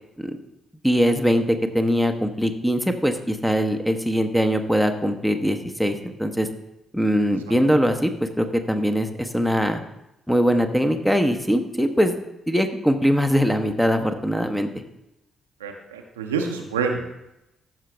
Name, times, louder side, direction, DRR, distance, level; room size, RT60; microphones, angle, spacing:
voice 1, 0.8-6.5 6.9-9.8 10.3-12.2 12.5-14.7, equal, 5° left, 7 dB, 0.9 m, -22 dB
voice 2, 15.6-17.1, right 5 dB, 80° right, 3 dB, 0.7 m, -27 dB
13.5 x 5.7 x 3.3 m, 0.88 s
figure-of-eight pair, 40°, 0 cm